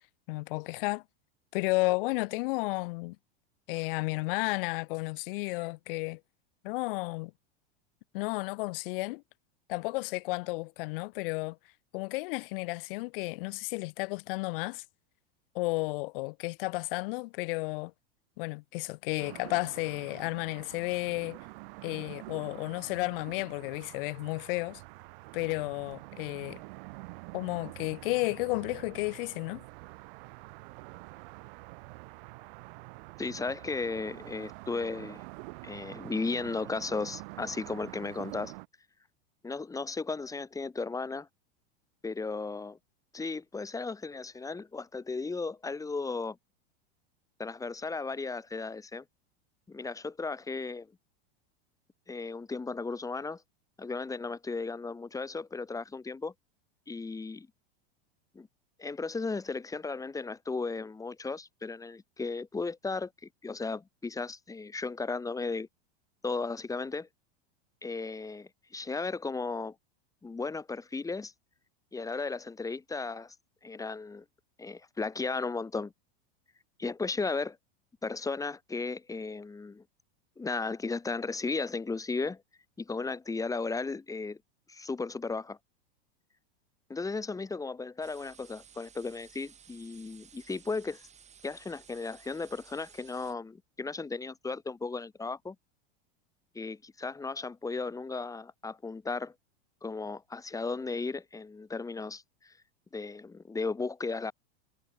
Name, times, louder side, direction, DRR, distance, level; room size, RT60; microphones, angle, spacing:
voice 1, 0.3-1.0 1.5-3.2 3.7-6.2 6.6-7.3 8.1-9.2 9.7-11.6 11.9-14.8 15.5-17.9 18.4-21.4 21.8-24.8 25.3-26.6 27.3-29.6, left 24 dB, 60° left, 0.8 m, -32 dB
sound 1, 19.2-38.7, right 26 dB, 60° right, 1.9 m, -47 dB
voice 2, 33.2-35.2 35.6-38.5 39.4-41.3 42.0-42.8 43.1-46.4 47.4-49.0 49.7-50.9 52.1-53.4 53.8-56.3 56.9-57.5 58.3-58.5 58.8-63.1 63.4-65.7 66.2-67.1 67.8-69.7 70.2-71.3 71.9-73.3 73.6-74.2 74.6-75.9 76.8-77.6 78.0-79.8 80.4-82.4 82.8-84.4 84.7-85.6 86.9-91.0 91.4-95.5 96.5-99.3 99.8-102.5 102.9-104.3, left 4 dB, 10° left, 3.0 m, -35 dB
sound 2, 88.0-93.3, right 8 dB, 20° right, 3.4 m, -56 dB
supercardioid pair, 135°, 31 cm